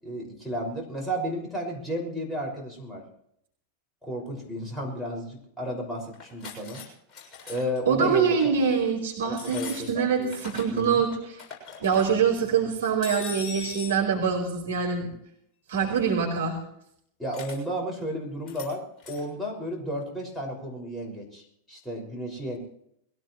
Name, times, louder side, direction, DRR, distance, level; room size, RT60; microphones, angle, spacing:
voice 1, 0.0-3.0 4.0-6.8 7.5-8.4 8.7-8.8 9.2-10.3 10.7-11.0 17.2-22.6, equal, 5° left, -2 dB, 5.9 m, -33 dB
sound 1, 6.1-6.9 7.1-7.8 8.3-8.5 9.3-10.9 11.1-12.1 13.0-14.0 17.3-17.6 18.5-18.7 19.0-19.2, left 5 dB, 25° left, 7.1 m, -40 dB
voice 2, 7.9-11.4 11.8-15.1 15.7-16.6, right 6 dB, 60° right, 0 dB, 4.7 m, -24 dB
22.5 x 17.0 x 3.2 m, 0.70 s
figure-of-eight pair, 90°, 0 cm